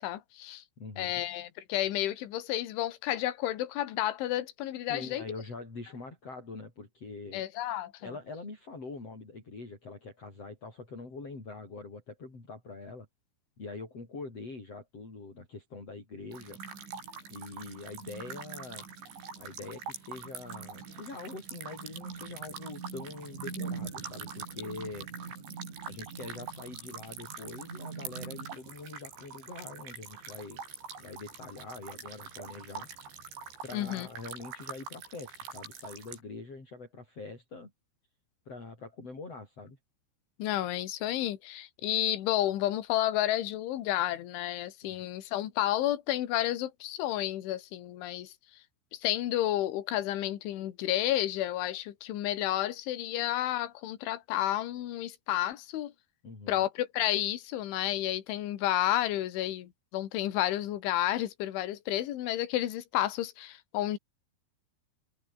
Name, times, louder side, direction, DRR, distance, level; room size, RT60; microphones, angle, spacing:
voice 1, 0.0-0.6 1.0-5.2 7.3-7.9 33.7-34.1 40.4-48.3 48.9-55.9 56.5-64.0, left 13 dB, 80° left, 4.3 m, -31 dB
voice 2, 0.8-1.2 4.9-7.4 8.0-13.1 13.6-16.6 17.3-18.9 19.4-25.1 25.9-30.6 31.0-32.9 33.6-37.7 38.5-39.8 44.8-45.1 56.2-56.6, left 3 dB, 30° left, 7.8 m, -44 dB
sound 1, 16.3-36.2, right 6 dB, 70° right, 8.4 m, -43 dB
omnidirectional pair, 5.5 m